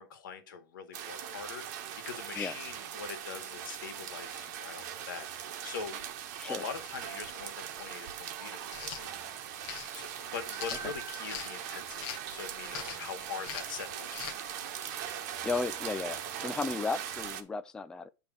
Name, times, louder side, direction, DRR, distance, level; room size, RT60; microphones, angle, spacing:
voice 1, 0.0-6.1 6.4-9.1 9.9-14.5, left 6 dB, 85° left, 1.8 m, -43 dB
sound 1, 0.9-17.4, right 9 dB, 55° right, 1.1 m, -40 dB
sound 2, 8.6-9.0 9.6-9.9 10.5-11.5 12.0-12.3 12.7-13.1 13.4-13.7 14.1-14.4, left 10 dB, 45° left, 0.9 m, -41 dB
sound 3, 10.3-17.4, right 4 dB, 35° right, 1.1 m, -53 dB
voice 2, 15.4-18.1, left 4 dB, 5° left, 0.3 m, -34 dB
8.6 x 3.5 x 6.0 m
supercardioid pair, 140°, 11 cm